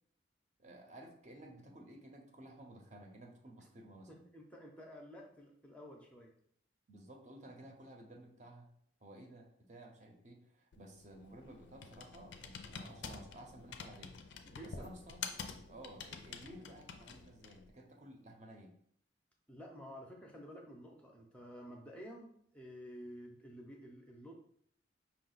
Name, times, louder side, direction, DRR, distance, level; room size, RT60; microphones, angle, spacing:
voice 1, 0.6-4.3 6.9-8.7 9.0-14.2 14.6-15.4 15.7-18.8, right 1 dB, 40° right, 3 dB, 0.6 m, -54 dB
voice 2, 4.1-6.3 14.4-14.9 19.5-24.3, equal, 5° left, 1 dB, 0.5 m, -51 dB
Computer keyboard, 10.7-17.7, left 6 dB, 80° left, 0.5 m, -48 dB
5.4 x 2.2 x 3.9 m, 0.65 s
head